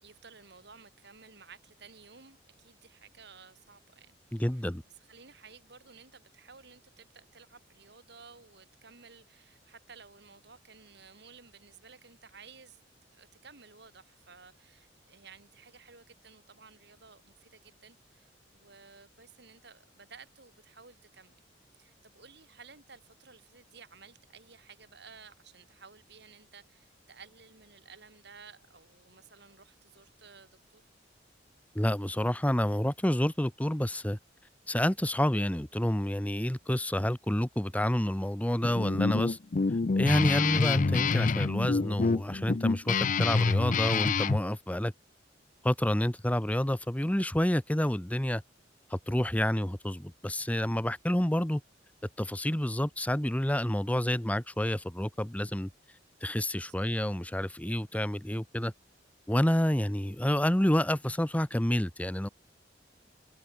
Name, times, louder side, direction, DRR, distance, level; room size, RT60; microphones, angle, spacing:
voice 1, 0.0-4.7 4.9-12.8 13.1-21.4 21.8-30.8 56.7-56.8, right 5 dB, 60° right, 3.9 m, -55 dB
voice 2, 4.3-4.8 31.7-34.2 34.7-39.4 40.0-44.9 45.6-48.4 48.9-51.6 52.2-55.7 56.2-58.7 59.3-62.3, left 1 dB, 10° left, 0.9 m, -29 dB
Guitar, 38.6-44.4, left 4 dB, 45° left, 0.5 m, -27 dB
head